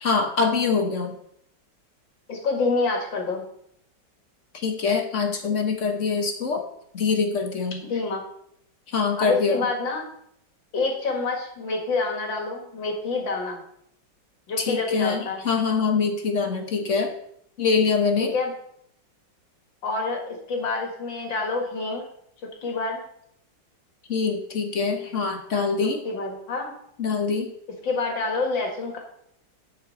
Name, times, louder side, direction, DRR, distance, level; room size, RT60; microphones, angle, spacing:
voice 1, 0.0-1.2 4.5-6.6 6.9-7.8 8.9-9.6 14.6-17.1 17.6-18.3 24.1-26.0 27.0-27.5, left 5 dB, 45° left, 4 dB, 1.4 m, -24 dB
voice 2, 2.3-3.5 7.8-8.2 9.2-10.0 10.7-13.6 14.5-15.4 18.2-18.5 19.8-22.1 22.6-23.0 25.8-26.7 27.8-29.0, left 3 dB, 75° left, 1 dB, 2.7 m, -27 dB
10.0 x 7.0 x 4.2 m, 0.71 s
omnidirectional pair, 2.0 m